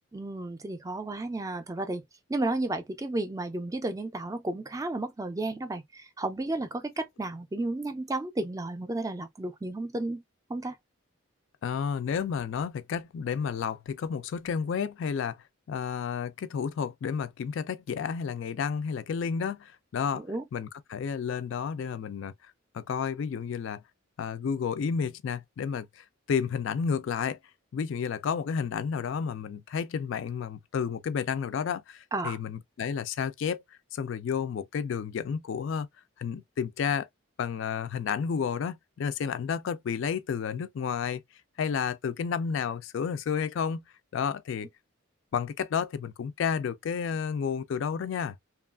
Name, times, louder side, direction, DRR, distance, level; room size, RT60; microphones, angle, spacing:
voice 1, 0.1-2.0 2.3-10.2 10.5-10.7 20.1-20.4 32.1-32.4, right 2 dB, 15° right, 0.3 m, -32 dB
voice 2, 11.6-15.4 15.7-20.2 20.5-22.3 22.7-23.8 24.2-27.4 27.7-33.6 33.9-35.9 36.2-37.1 37.4-41.2 41.6-43.8 44.1-44.7 45.3-48.4, left 6 dB, 65° left, 0.3 m, -31 dB
2.9 x 2.3 x 2.2 m
head